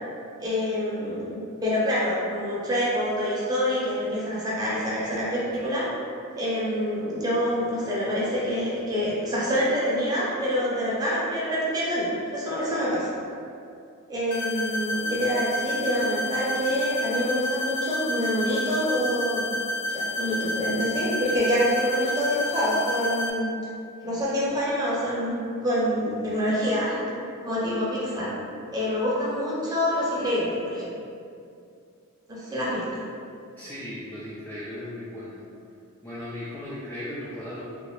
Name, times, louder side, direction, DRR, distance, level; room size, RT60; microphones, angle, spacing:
voice 1, 0.4-5.9 6.4-13.1 14.1-19.5 19.9-23.5 24.0-27.0 27.4-28.3 28.7-30.9 32.3-33.0, equal, 15° right, -8 dB, 0.8 m, -26 dB
sound 1, 14.3-23.3, left 1 dB, 85° left, 0.4 m, -30 dB
voice 2, 33.6-35.4 36.0-37.7, left 1 dB, 10° left, -9 dB, 0.3 m, -36 dB
3.1 x 2.7 x 3.1 m, 2.4 s
head